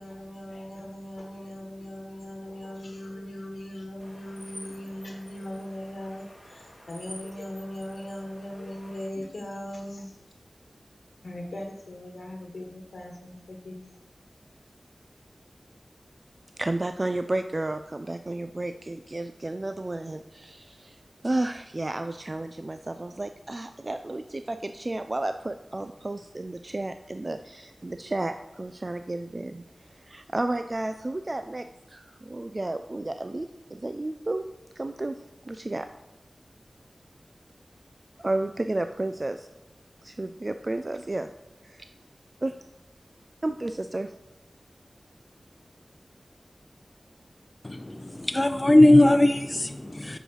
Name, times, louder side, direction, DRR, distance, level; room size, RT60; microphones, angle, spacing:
voice 1, 0.0-10.2 11.2-13.8, left 1 dB, 75° left, 1.3 m, -39 dB
sound 1, 4.0-9.1, equal, 5° left, 1.6 m, -49 dB
voice 2, 16.6-21.0 21.2-29.6 29.9-34.5 34.8-35.2 35.5-35.9 38.2-39.5 40.0-41.3 41.6-41.9 42.4-42.5 43.4-44.1, right 2 dB, 40° right, 0.4 m, -32 dB
voice 3, 47.6-50.2, left 1 dB, 25° left, 0.6 m, -19 dB
7.8 x 5.0 x 6.2 m
wide cardioid pair, 70°, 0 cm